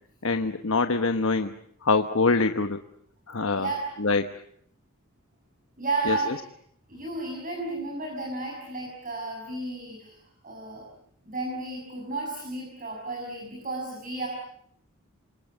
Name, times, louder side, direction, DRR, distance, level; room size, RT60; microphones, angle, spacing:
voice 1, 0.2-2.8 3.3-4.3 6.0-6.4, left 3 dB, 65° left, 8 dB, 1.1 m, -25 dB
voice 2, 5.8-6.4 6.9-10.8 11.2-14.3, right 3 dB, 40° right, 1 dB, 6.4 m, -33 dB
28.0 x 25.0 x 7.9 m, 0.70 s
head